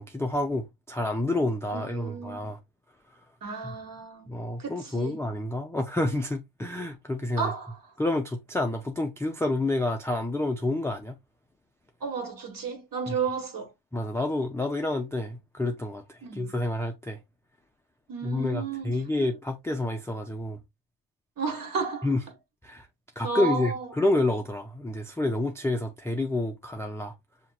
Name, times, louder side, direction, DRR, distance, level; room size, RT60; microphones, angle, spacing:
voice 1, 0.0-2.6 3.6-3.8 4.3-7.5 8.0-11.2 13.1-13.2 13.9-17.2 18.2-20.6 22.0-22.2 22.6-22.9 23.2-27.1, left 2 dB, 5° left, 0.3 m, -29 dB
voice 2, 1.7-2.4 3.4-4.3 4.6-5.2 7.4-7.8 12.0-13.7 16.2-16.5 18.1-19.3 21.4-22.1 23.2-23.9, right 5 dB, 45° right, 1.4 m, -33 dB
5.7 x 2.9 x 2.3 m
cardioid pair, 95°, 48 cm